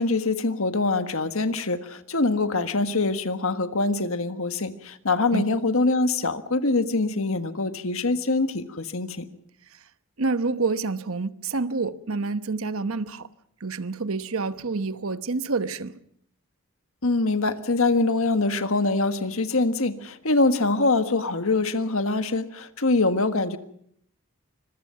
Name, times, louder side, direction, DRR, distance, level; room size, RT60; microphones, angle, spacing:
voice 1, 0.0-9.2 17.0-23.6, left 3 dB, 75° left, 1.6 m, -24 dB
voice 2, 10.2-13.3 13.6-16.0, right 3 dB, 75° right, 1.0 m, -28 dB
25.5 x 22.5 x 5.8 m
head